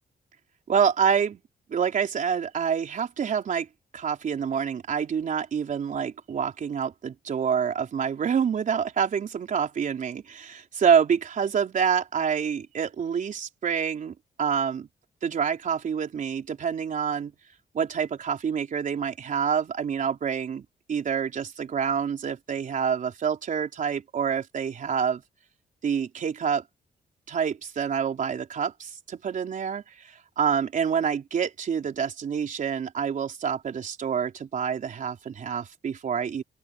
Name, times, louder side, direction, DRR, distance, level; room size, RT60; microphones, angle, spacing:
voice 1, 0.7-1.4 1.7-3.7 3.9-14.9 15.2-17.3 17.7-25.2 25.8-26.6 27.3-36.4, right 7 dB, 55° right, 4.1 m, -27 dB
open air
wide cardioid pair, 150°, 16 cm